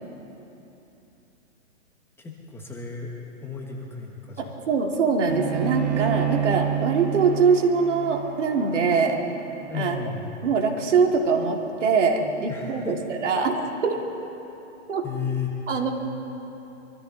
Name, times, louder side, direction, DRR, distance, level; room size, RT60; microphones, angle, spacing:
voice 1, 2.2-3.1 3.4-4.6 9.7-10.3 12.5-13.0 15.0-15.5, left 6 dB, 5° left, -1 dB, 1.0 m, -33 dB
voice 2, 4.4-9.2 9.7-10.0 10.4-14.0 14.9-15.0 15.7-15.9, right 5 dB, 70° right, 2 dB, 2.6 m, -23 dB
Bowed string instrument, 5.3-10.6, right 9 dB, 35° right, 1.7 m, -29 dB
24.0 x 14.0 x 4.0 m, 3.0 s
hypercardioid pair, 150°, 38 cm